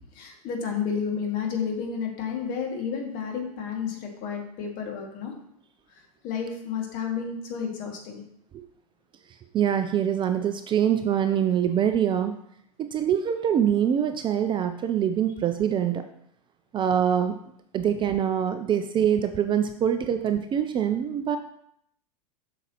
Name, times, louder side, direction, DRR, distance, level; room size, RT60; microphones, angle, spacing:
voice 1, 0.1-5.3 5.9-8.2, left 6 dB, 45° left, 1 dB, 2.0 m, -31 dB
voice 2, 9.5-12.3 12.8-16.0 16.7-17.4 17.7-21.4, right 9 dB, 25° right, 8 dB, 0.4 m, -24 dB
7.7 x 6.2 x 2.9 m, 0.72 s
hypercardioid pair, 105°, 20 cm